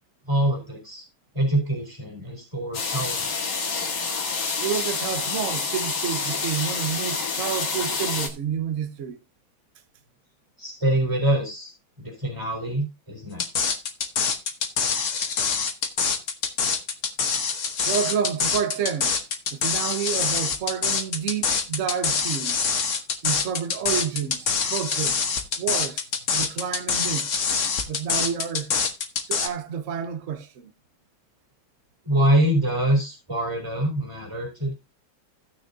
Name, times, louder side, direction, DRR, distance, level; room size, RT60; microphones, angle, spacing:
voice 1, 0.3-1.0 1.3-3.3 10.6-11.7 12.0-13.8 32.0-34.7, right 1 dB, 15° right, 3.9 m, -25 dB
sound 1, 2.7-8.3, left 4 dB, 60° left, 2.3 m, -28 dB
voice 2, 4.6-9.2 17.8-19.2 19.5-22.7 23.2-25.2 25.6-27.3 27.9-28.7 29.3-30.7, right 8 dB, 45° right, 1.2 m, -29 dB
sound 2, 13.4-29.5, left 5 dB, 45° left, 1.3 m, -25 dB
16.5 x 6.3 x 2.7 m
omnidirectional pair, 2.2 m